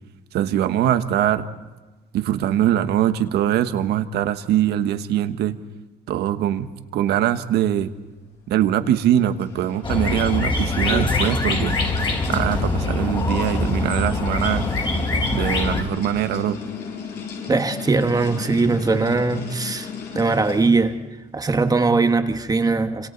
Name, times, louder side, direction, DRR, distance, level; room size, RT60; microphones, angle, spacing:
voice 1, 0.3-1.5 2.1-5.6 6.1-7.9 8.5-11.8 12.3-14.7 15.3-16.6, right 11 dB, 75° right, 1.4 m, -22 dB
sound 1, 8.8-21.0, left 6 dB, 70° left, 7.0 m, -35 dB
sound 2, 9.8-15.8, left 2 dB, 30° left, 4.5 m, -23 dB
voice 2, 17.5-19.9 20.1-20.9 21.3-23.1, right 3 dB, 20° right, 1.5 m, -20 dB
27.5 x 27.0 x 4.1 m
cardioid pair, 110°, 17 cm